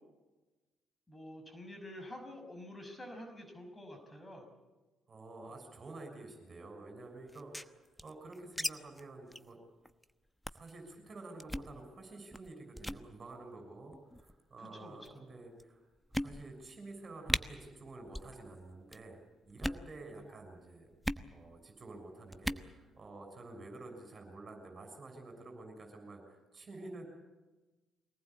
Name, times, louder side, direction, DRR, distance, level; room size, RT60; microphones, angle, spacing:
voice 1, 1.1-4.5 14.6-15.2, left 1 dB, 20° left, 5 dB, 6.1 m, -48 dB
voice 2, 5.1-9.6 10.5-15.9 16.1-19.2 19.4-20.9 21.3-27.1, right 2 dB, 40° right, 4 dB, 6.8 m, -50 dB
sound 1, 7.3-8.7 9.0-9.1 9.3-9.5 9.9-10.0 10.4-10.7 11.4-11.7 12.3-12.5 12.8-13.0 13.9-14.3 15.1-15.2 15.6-15.7 16.1-16.7 17.0-17.1 17.3-17.4 18.1-18.4 18.6-19.0 19.5-19.9 21.0-21.3 22.3-22.7, equal, 5° left, 1.0 m, -37 dB
24.0 x 19.0 x 8.5 m, 1.2 s
hypercardioid pair, 45°, 0 cm